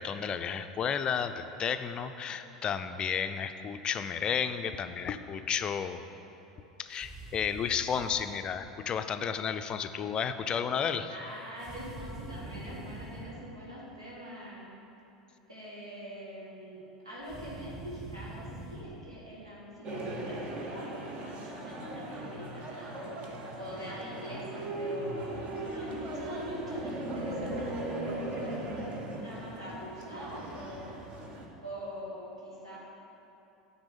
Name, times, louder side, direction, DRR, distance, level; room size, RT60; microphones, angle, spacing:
voice 1, 0.0-6.0 6.8-11.1, left 7 dB, 30° left, 10 dB, 0.4 m, -32 dB
sound 1, 6.9-8.4 11.6-13.4 17.2-18.9, right 1 dB, 20° right, 1.3 m, -45 dB
voice 2, 11.1-14.8 15.5-31.3 31.6-32.8, equal, 80° right, -7 dB, 1.9 m, -44 dB
sound 2, 19.8-31.5, right 1 dB, 40° right, 1.1 m, -38 dB
9.5 x 4.1 x 6.9 m, 2.9 s
figure-of-eight pair, 75°, 3 cm